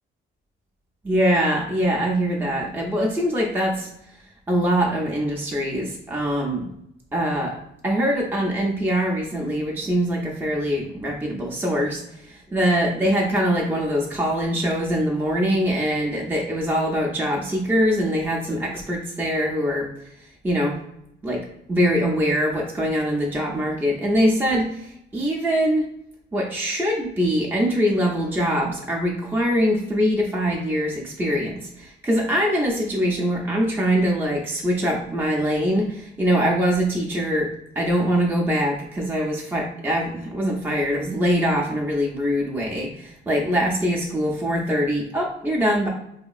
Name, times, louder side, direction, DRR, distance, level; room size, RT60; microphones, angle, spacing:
voice 1, 1.0-3.9 4.5-6.7 7.1-19.9 20.4-20.8 21.2-25.9 26.3-37.5 37.8-45.9, equal, 10° right, -2 dB, 0.4 m, -23 dB
2.8 x 2.4 x 2.3 m, 0.79 s
cardioid pair, 90°, 20 cm